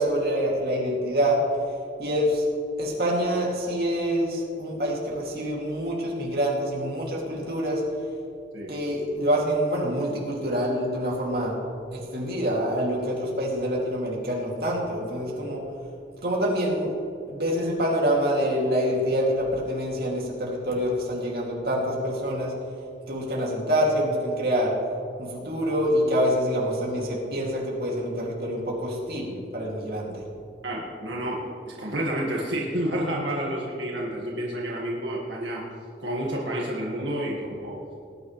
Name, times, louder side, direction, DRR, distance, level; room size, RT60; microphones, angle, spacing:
voice 1, 0.0-1.4 2.0-2.5 2.8-7.8 8.7-11.5 11.9-15.6 16.2-16.9 17.3-22.5 23.1-24.7 25.2-30.2, equal, 55° right, -4 dB, 2.7 m, -26 dB
voice 2, 30.6-31.5 31.8-35.7 36.0-37.8, right 1 dB, 85° right, -4 dB, 1.9 m, -29 dB
19.5 x 9.7 x 3.3 m, 2.4 s
head